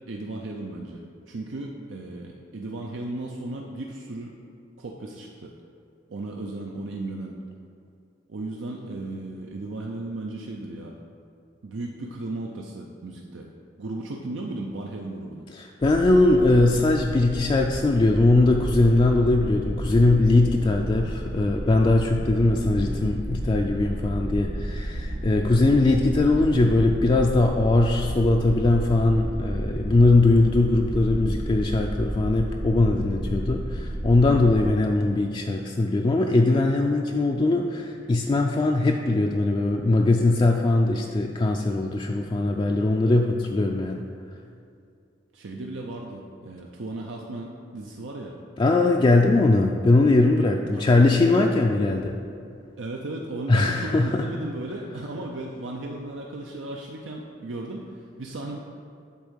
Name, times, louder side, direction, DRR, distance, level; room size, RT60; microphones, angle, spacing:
voice 1, 0.1-1.0 1.3-4.3 4.8-5.5 6.1-7.4 8.3-11.0 11.6-13.5 13.8-15.5 25.4-25.6 45.3-47.5 47.7-48.4 50.7-50.9 51.3-51.6 52.8-57.9 58.2-58.6, right 2 dB, 90° right, 0 dB, 0.6 m, -35 dB
voice 2, 15.5-44.0 48.6-52.2 53.5-54.3, left 2 dB, 25° left, 1 dB, 0.3 m, -21 dB
sound 1, 15.8-34.7, right 1 dB, 35° right, 0.6 m, -32 dB
8.4 x 3.7 x 6.3 m, 2.4 s
head